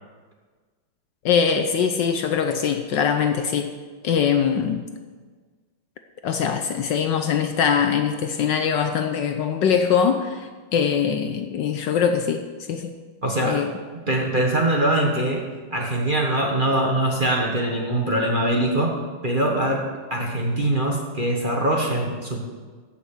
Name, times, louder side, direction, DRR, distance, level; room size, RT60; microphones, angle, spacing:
voice 1, 1.2-3.7 4.0-4.9 6.2-12.9 13.4-13.7, left 7 dB, 70° left, 7 dB, 1.2 m, -22 dB
voice 2, 13.2-13.6 14.1-15.4 15.7-18.9 19.2-19.8 20.1-22.5, right 1 dB, 30° right, -1 dB, 1.2 m, -22 dB
15.0 x 5.8 x 6.6 m, 1.4 s
omnidirectional pair, 2.3 m